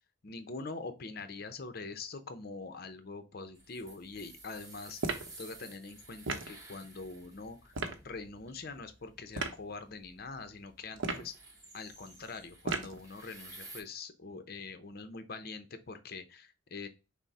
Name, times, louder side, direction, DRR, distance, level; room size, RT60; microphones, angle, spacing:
voice 1, 0.2-5.0 5.4-7.7 8.0-11.3 11.7-16.9, left 3 dB, 50° left, 9 dB, 0.7 m, -44 dB
sound 1, 3.5-13.8, right 2 dB, 20° right, 1.0 m, -54 dB
sound 2, 5.0-5.3 6.3-6.5 7.7-8.0 9.3-9.6 11.0-11.4 12.7-13.0, right 3 dB, 80° right, 0.8 m, -34 dB
6.1 x 2.1 x 4.0 m, 0.30 s
head